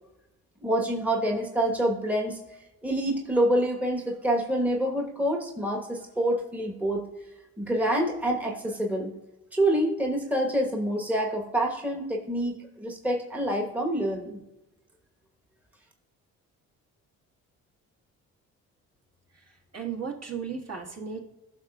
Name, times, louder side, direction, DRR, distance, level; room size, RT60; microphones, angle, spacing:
voice 1, 0.6-2.4 2.8-7.0 7.6-9.1 9.5-14.4, right 1 dB, 5° right, 1 dB, 1.2 m, -27 dB
voice 2, 19.3-21.2, right 6 dB, 35° right, 0 dB, 1.6 m, -36 dB
14.0 x 5.9 x 2.4 m, 0.97 s
hypercardioid pair, 50°, 42 cm